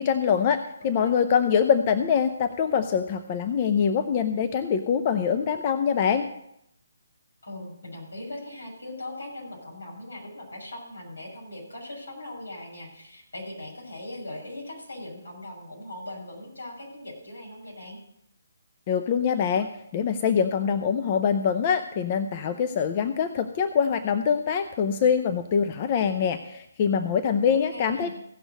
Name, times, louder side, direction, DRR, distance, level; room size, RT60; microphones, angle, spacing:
voice 1, 0.0-6.3 18.9-28.1, left 7 dB, 35° left, 8 dB, 0.6 m, -24 dB
voice 2, 0.8-1.2 7.4-18.0 27.5-28.1, left 1 dB, 80° left, -1 dB, 6.4 m, -40 dB
16.0 x 6.2 x 6.4 m, 0.77 s
figure-of-eight pair, 150°, 0 cm